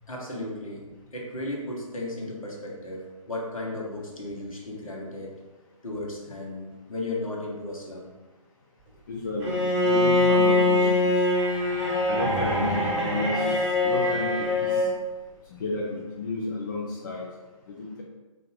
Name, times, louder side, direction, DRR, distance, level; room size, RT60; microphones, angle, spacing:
voice 1, 0.1-0.8 1.1-5.3 5.8-8.1, left 2 dB, 70° left, -2 dB, 0.9 m, -35 dB
voice 2, 9.1-11.1 12.1-13.5 13.8-14.9 15.6-17.3 17.7-18.0, left 3 dB, 35° left, -3 dB, 0.4 m, -32 dB
Bowed string instrument, 9.4-14.9, left 2 dB, 10° right, 1.2 m, -23 dB
2.6 x 2.5 x 3.7 m, 1.2 s
figure-of-eight pair, 135°, 18 cm